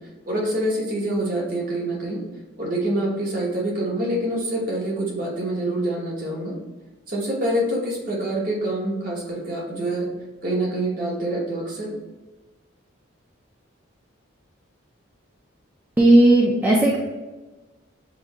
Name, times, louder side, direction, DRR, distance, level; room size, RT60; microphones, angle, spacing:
voice 1, 0.3-2.2 2.6-6.6 7.1-10.1 10.4-11.9, right 1 dB, 40° right, -3 dB, 1.0 m, -26 dB
voice 2, 16.0-17.0, right 1 dB, 10° right, -4 dB, 0.4 m, -15 dB
7.2 x 2.7 x 2.3 m, 1.2 s
head